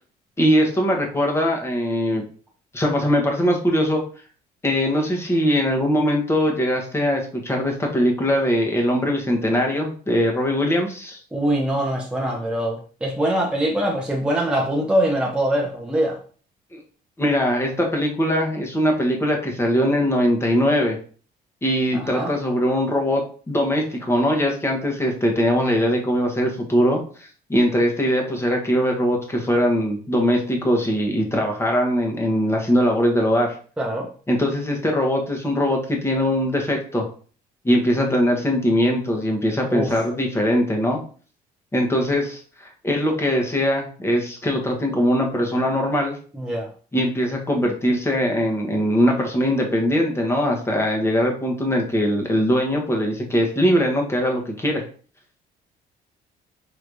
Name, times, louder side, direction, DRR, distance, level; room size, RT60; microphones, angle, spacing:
voice 1, 0.4-2.2 2.7-4.0 4.6-11.2 16.7-16.8 17.2-21.0 21.6-33.6 34.3-37.1 37.6-41.0 41.7-46.2 46.9-54.8, equal, 15° left, 1.1 m, -21 dB
voice 2, 11.3-16.2 21.9-22.3 33.8-34.1 39.7-39.9 46.3-46.7, right 1 dB, 5° right, 0.7 m, -23 dB
4.7 x 3.1 x 2.6 m
cardioid pair, 110°, 17 cm